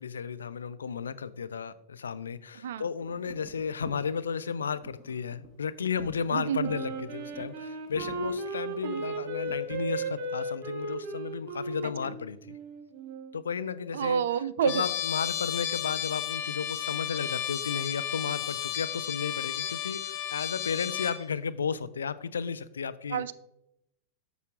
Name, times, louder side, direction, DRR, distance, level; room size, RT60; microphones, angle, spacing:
voice 1, 0.0-12.6 13.3-14.2 14.6-23.2, left 6 dB, 70° left, 14 dB, 0.4 m, -33 dB
sound 1, 3.0-10.0, right 2 dB, 10° right, 1.4 m, -51 dB
voice 2, 6.3-6.7 8.8-9.0 11.8-11.9 13.9-14.8 23.1-23.3, right 9 dB, 60° right, 17 dB, 0.4 m, -29 dB
Wind instrument woodwind instrument, 6.6-13.4, right 2 dB, 40° right, 1.4 m, -36 dB
Trumpet, 14.7-21.2, left 11 dB, 45° left, 1.0 m, -33 dB
11.0 x 6.8 x 2.4 m, 0.80 s
figure-of-eight pair, 90°, 0 cm